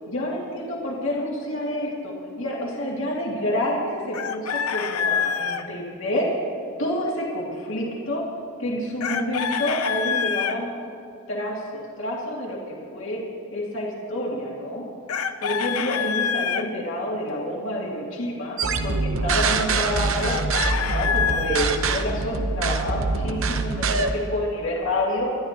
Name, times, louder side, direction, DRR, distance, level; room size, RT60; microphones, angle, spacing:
voice 1, 0.1-6.3 6.8-8.3 8.6-10.7 11.3-13.2 13.5-14.9 15.4-20.4 20.8-25.4, left 1 dB, 60° left, -3 dB, 2.2 m, -28 dB
Chicken rooster, 4.1-5.6 9.0-10.6 15.1-16.6 20.2-21.7, left 7 dB, 85° left, 0.7 m, -26 dB
sound 1, 18.6-24.1, right 3 dB, 65° right, 0.8 m, -24 dB
25.5 x 12.5 x 2.9 m, 2.5 s
head